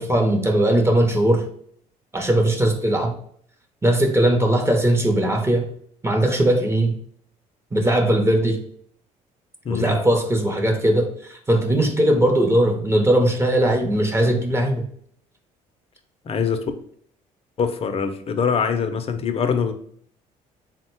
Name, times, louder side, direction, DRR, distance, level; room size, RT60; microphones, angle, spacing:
voice 1, 0.0-1.5 2.1-3.1 3.8-5.7 6.0-6.9 7.7-8.6 9.7-14.8, right 1 dB, 15° right, 3 dB, 0.7 m, -19 dB
voice 2, 9.6-10.0 16.2-16.7 17.6-19.7, left 6 dB, 40° left, 8 dB, 0.5 m, -23 dB
3.7 x 2.1 x 4.4 m, 0.63 s
cardioid pair, 90°, 15 cm